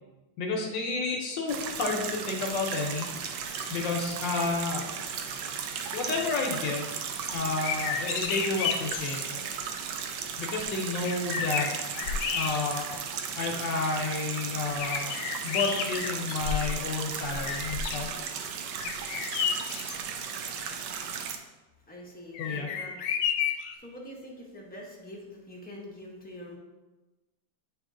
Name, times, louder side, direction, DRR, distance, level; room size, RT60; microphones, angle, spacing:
voice 1, 0.4-4.9 5.9-6.9 7.3-9.4 10.4-11.7 12.3-12.8 13.4-15.1 15.4-18.1 22.4-22.7, left 3 dB, 70° left, 0 dB, 1.4 m, -31 dB
sound 1, 1.5-21.4, right 7 dB, 75° right, 1.1 m, -36 dB
sound 2, 7.5-9.2 10.6-10.7 11.0-13.0 13.5-13.6 14.8-16.8 17.2-18.1 18.8-20.0 22.3-23.8, left 7 dB, 90° left, 1.4 m, -32 dB
voice 2, 21.8-26.6, left 1 dB, 10° left, -3 dB, 0.6 m, -45 dB
8.8 x 3.0 x 3.7 m, 1.1 s
omnidirectional pair, 2.2 m